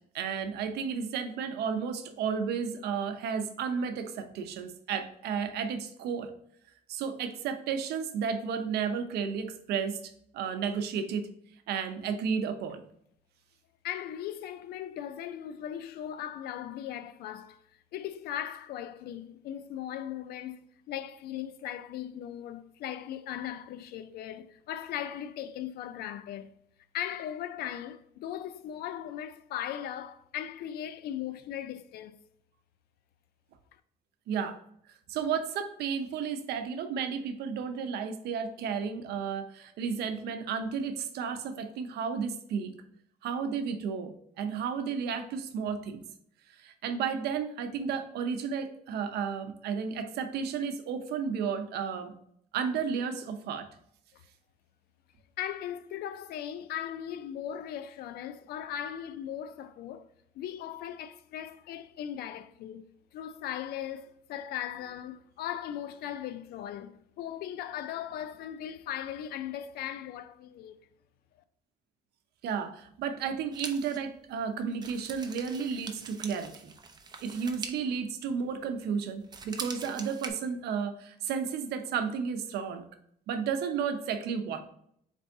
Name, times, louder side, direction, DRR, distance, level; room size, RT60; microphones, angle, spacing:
voice 1, 0.1-6.3 6.9-11.3 11.7-12.8 34.3-34.6 35.1-42.7 43.2-46.0 46.5-52.1 52.5-53.7 72.4-76.7 77.2-82.9 83.3-84.6, right 6 dB, 75° right, 0.7 m, -33 dB
voice 2, 13.8-17.6 17.9-26.5 26.9-32.2 33.7-33.8 54.1-54.2 55.4-60.1 60.3-62.9 63.1-70.8, left 10 dB, 65° left, 0.4 m, -38 dB
sound 1, 73.5-78.9 79.2-80.3, right 4 dB, 25° right, 0.5 m, -43 dB
4.3 x 3.4 x 2.7 m
cardioid pair, 110°, 17 cm